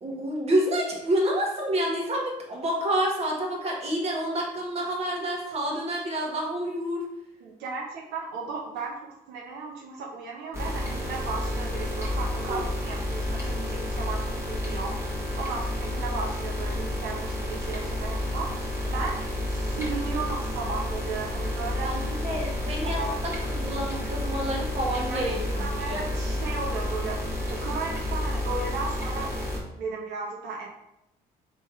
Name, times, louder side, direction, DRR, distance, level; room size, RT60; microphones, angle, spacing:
voice 1, 0.0-7.1 12.5-12.7 21.8-26.0, right 1 dB, 40° right, -2 dB, 1.3 m, -28 dB
voice 2, 7.4-8.9 9.3-15.0 15.4-18.5 18.8-19.2 19.5-22.0 23.0-23.2 25.1-25.3 25.6-27.2 27.5-29.5 29.8-30.7, right 4 dB, 80° right, -2 dB, 0.8 m, -35 dB
sound 1, 10.5-29.6, left 1 dB, 15° right, 1.2 m, -30 dB
3.5 x 3.1 x 4.3 m, 0.86 s
cardioid pair, 110°, 17 cm